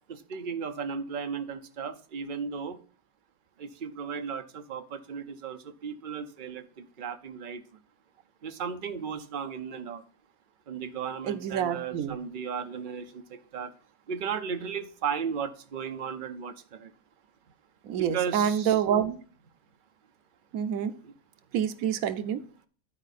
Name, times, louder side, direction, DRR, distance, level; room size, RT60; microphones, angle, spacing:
voice 1, 0.1-2.8 3.6-7.6 8.4-10.0 10.7-13.7 14.1-16.9 18.0-18.7 21.0-21.1, right 6 dB, 45° right, 8 dB, 0.8 m, -35 dB
voice 2, 11.2-12.2 17.8-19.2 20.5-20.9 21.5-22.4, right 9 dB, 85° right, 11 dB, 1.1 m, -27 dB
11.5 x 4.7 x 4.1 m, 0.42 s
omnidirectional pair, 1.4 m